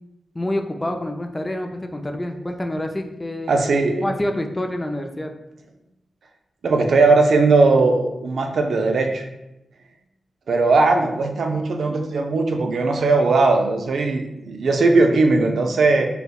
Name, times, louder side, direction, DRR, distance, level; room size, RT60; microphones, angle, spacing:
voice 1, 0.3-3.6 4.0-5.3, left 1 dB, 20° left, 5 dB, 0.4 m, -27 dB
voice 2, 3.5-4.1 6.6-9.3 10.5-16.1, right 3 dB, 75° right, 4 dB, 0.4 m, -18 dB
5.4 x 2.1 x 2.3 m, 0.92 s
cardioid pair, 75°, 0 cm